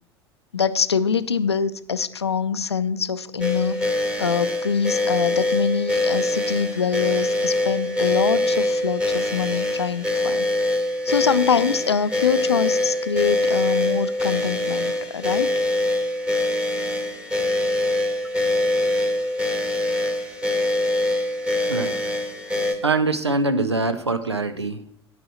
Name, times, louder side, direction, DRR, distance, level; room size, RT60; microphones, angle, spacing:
voice 1, 0.5-3.8 4.2-10.5 11.0-15.5, left 6 dB, 80° left, 14 dB, 0.5 m, -24 dB
sound 1, 3.4-22.8, left 1 dB, 10° right, 2.1 m, -24 dB
voice 2, 22.8-25.0, right 3 dB, 85° right, 10 dB, 0.8 m, -23 dB
9.5 x 8.9 x 4.3 m, 0.70 s
figure-of-eight pair, 70°, 14 cm